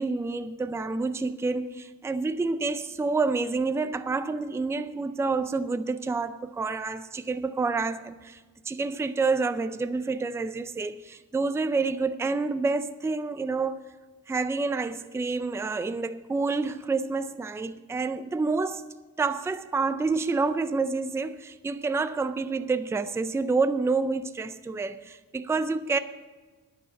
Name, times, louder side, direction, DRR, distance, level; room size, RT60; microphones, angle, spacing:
voice 1, 0.0-8.4 8.6-13.8 14.3-18.9 19.2-26.0, right 4 dB, 10° right, 0.4 m, -28 dB
11.0 x 9.4 x 6.9 m
wide cardioid pair, 170°, 35 cm